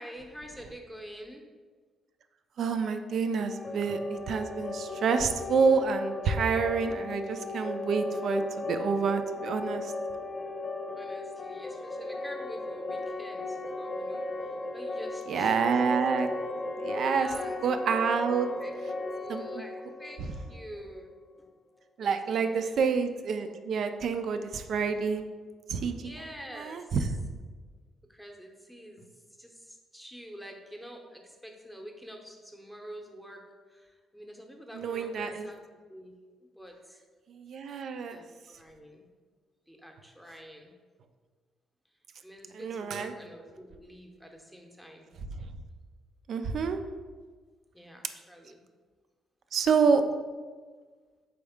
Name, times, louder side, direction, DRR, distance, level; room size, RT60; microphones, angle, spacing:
voice 1, 0.0-1.5 10.9-16.0 16.8-17.6 18.6-18.8 19.0-21.1 22.0-22.7 25.9-27.0 28.1-29.1 29.4-33.4 33.7-35.6 35.9-37.0 38.1-39.1 39.7-40.7 42.2-45.1 47.7-48.6, equal, ahead, 1 dB, 0.7 m, -47 dB
voice 2, 2.6-9.9 15.3-16.3 16.8-18.5 19.3-19.6 20.2-20.3 22.0-25.2 25.7-27.1 34.7-35.5 37.4-38.2 42.5-43.1 46.3-46.8 49.5-50.0, right 5 dB, 65° right, 8 dB, 0.3 m, -28 dB
sound 1, 3.4-21.2, left 2 dB, 35° left, 0.5 m, -36 dB
4.2 x 3.5 x 3.5 m, 1.5 s
cardioid pair, 85°, 0 cm